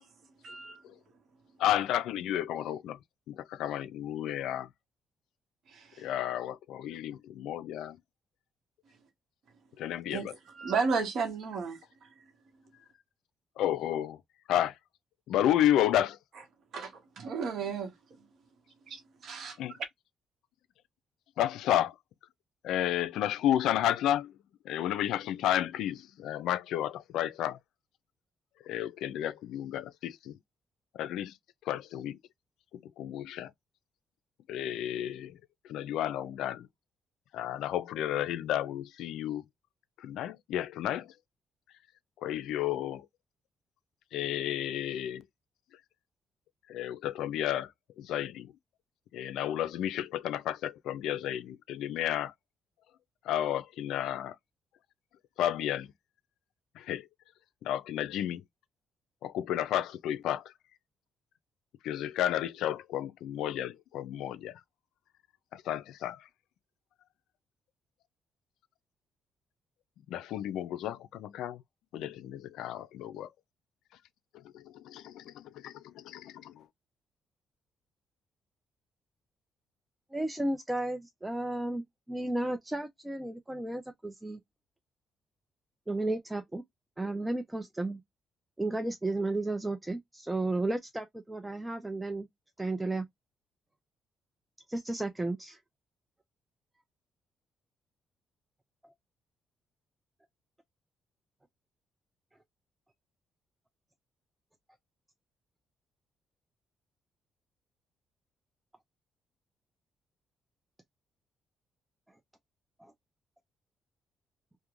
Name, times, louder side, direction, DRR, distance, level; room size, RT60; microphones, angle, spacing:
voice 1, 0.4-0.8 5.7-6.1 10.1-12.1 16.7-17.9 18.9-19.6, right 5 dB, 60° right, 0.8 m, -34 dB
voice 2, 1.6-3.0 3.3-4.7 6.0-8.0 9.8-10.3 13.6-14.2 14.5-14.8 15.3-16.2 19.6-19.8 21.4-22.0 22.6-24.3 24.6-27.6 28.6-30.4 31.0-31.4 31.7-32.2 32.7-33.5 34.5-35.4 35.7-36.7 37.3-39.4 40.0-41.1 42.2-43.1 44.1-45.2 46.7-47.7 48.0-48.5 49.1-52.3 53.2-54.4 55.4-55.9 56.8-57.1 57.6-58.4 59.2-60.5 61.8-64.6 65.5-66.3 70.1-71.6 71.9-73.3 74.3-76.6, left 11 dB, 85° left, 0.3 m, -32 dB
voice 3, 80.1-84.4 85.9-86.6 87.0-88.0 88.6-92.3 92.6-93.1 94.7-95.6 112.8-112.9, right 2 dB, 10° right, 0.5 m, -33 dB
2.4 x 2.1 x 2.9 m
cardioid pair, 90°, 0 cm